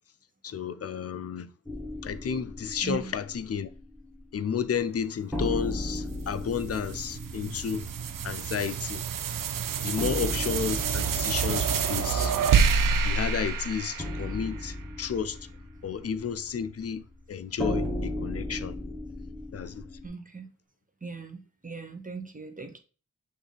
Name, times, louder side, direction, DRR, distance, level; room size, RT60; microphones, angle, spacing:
voice 1, 0.4-1.5 2.0-3.7 4.3-7.9 8.2-9.0 9.8-12.4 13.0-15.4 15.8-18.8 19.5-19.8, left 7 dB, 50° left, 0.5 m, -32 dB
sound 1, 1.7-4.5 4.8-4.9 5.3-20.1, left 1 dB, ahead, 1.3 m, -37 dB
voice 2, 2.8-3.1 10.0-10.2 20.0-20.5 21.0-22.8, right 4 dB, 25° right, 0.8 m, -39 dB
sound 2, 6.1-14.7, right 6 dB, 85° right, 0.5 m, -28 dB
6.0 x 2.6 x 3.3 m
cardioid pair, 40°, 32 cm